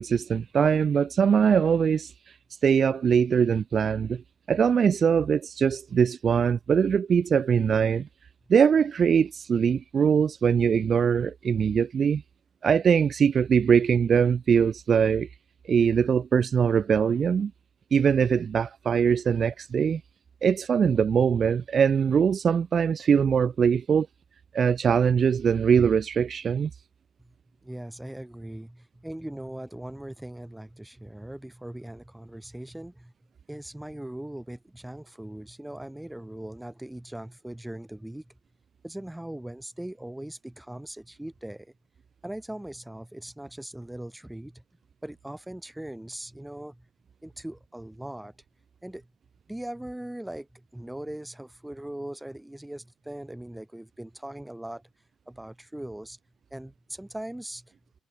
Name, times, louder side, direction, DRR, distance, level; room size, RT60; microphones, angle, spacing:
voice 1, 0.0-2.3 2.6-4.2 4.5-8.1 8.5-12.2 12.6-15.3 15.7-17.5 17.9-20.0 20.4-24.1 24.5-26.7, right 7 dB, 50° right, 1.0 m, -22 dB
voice 2, 27.6-33.1 33.5-38.3 38.8-41.7 42.2-44.6 45.0-46.9 47.2-48.3 48.8-49.1 49.5-54.9 55.3-56.2 56.5-57.7, right 1 dB, 5° right, 5.9 m, -40 dB
cardioid pair, 90°, 0 cm